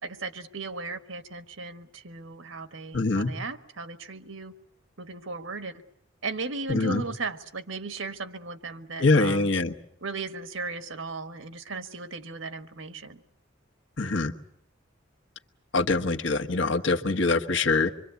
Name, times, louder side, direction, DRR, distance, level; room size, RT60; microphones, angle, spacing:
voice 1, 0.0-4.5 5.0-5.8 6.2-9.5 10.0-13.2, right 3 dB, 80° right, 10 dB, 1.5 m, -36 dB
voice 2, 2.9-3.3 6.7-7.0 9.0-9.7 14.0-14.3 15.7-17.9, left 3 dB, 65° left, 5 dB, 1.4 m, -24 dB
26.0 x 23.5 x 8.3 m, 0.75 s
head